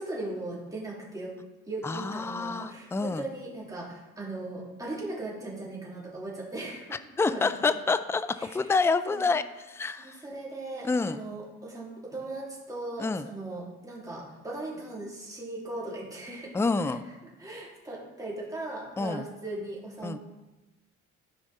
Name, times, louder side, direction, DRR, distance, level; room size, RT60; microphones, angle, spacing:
voice 1, 0.0-1.3 1.7-7.0 7.3-7.5 8.4-8.7 9.1-9.2 10.0-16.5 16.8-17.0 17.2-20.2, right 2 dB, 10° right, -5 dB, 3.1 m, -38 dB
voice 2, 1.8-3.3 6.9-10.2 10.8-11.2 13.0-13.3 16.5-17.0 19.0-19.3 20.0-20.2, left 4 dB, 10° left, 12 dB, 0.4 m, -28 dB
14.0 x 5.1 x 4.2 m, 1.1 s
cardioid pair, 90°, 30 cm